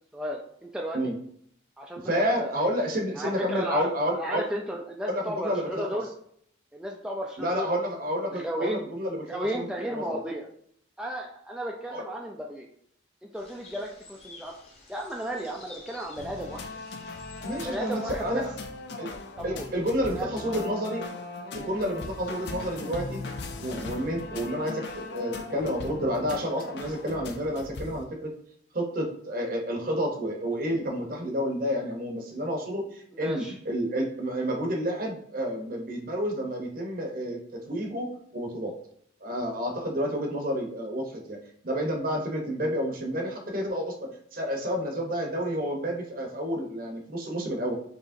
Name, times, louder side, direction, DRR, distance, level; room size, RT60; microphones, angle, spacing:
voice 1, 0.1-1.0 1.8-2.1 2.4-2.6 3.2-6.1 6.7-7.7 8.1-8.8 9.2-10.5 11.0-12.7 13.2-14.5 14.9-16.8 17.6-18.4 19.4-19.7 20.1-20.3 20.5-20.6 33.1-33.5, equal, 5° right, -1 dB, 0.3 m, -34 dB
voice 2, 2.0-4.5 5.1-6.0 7.4-9.7 9.9-10.2 11.9-12.1 17.4-18.5 19.0-19.1 19.4-21.0 21.5-23.2 23.6-28.3 28.7-38.8 39.2-41.4 41.6-47.7, equal, 45° right, 2 dB, 0.8 m, -30 dB
sound 1, 13.3-18.5, left 3 dB, 30° left, 1.0 m, -51 dB
sound 2, 16.2-28.0, left 3 dB, 55° left, 0.5 m, -39 dB
4.9 x 2.9 x 2.6 m, 0.65 s
head